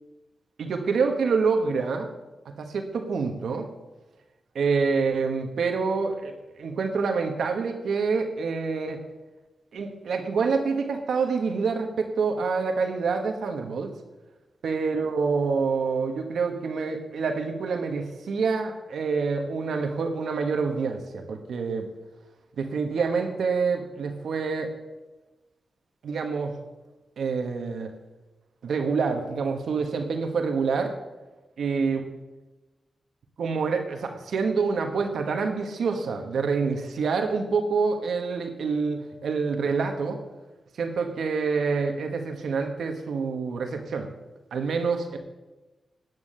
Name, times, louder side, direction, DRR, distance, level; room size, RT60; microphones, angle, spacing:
voice 1, 0.6-2.1 2.4-3.7 4.5-9.0 9.7-13.9 14.6-21.9 22.6-24.7 26.0-26.6 27.2-27.9 28.6-30.9 31.6-32.0 33.4-40.2 40.8-44.1 44.5-45.2, right 5 dB, 85° right, 5 dB, 1.3 m, -27 dB
9.4 x 9.3 x 6.6 m, 1.1 s
wide cardioid pair, 110°, 0 cm